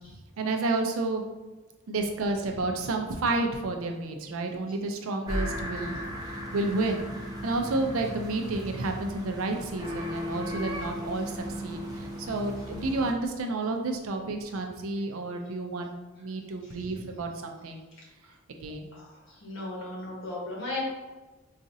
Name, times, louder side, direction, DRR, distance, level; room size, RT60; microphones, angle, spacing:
voice 1, 0.4-1.2 1.9-7.0 7.4-15.9 16.2-17.8 18.5-18.9, right 2 dB, 85° right, 3 dB, 0.5 m, -31 dB
sound 1, 5.3-13.1, equal, 20° right, 0.5 m, -36 dB
voice 2, 18.9-20.8, left 2 dB, 65° left, -4 dB, 1.1 m, -36 dB
3.9 x 2.4 x 2.6 m, 1.2 s
head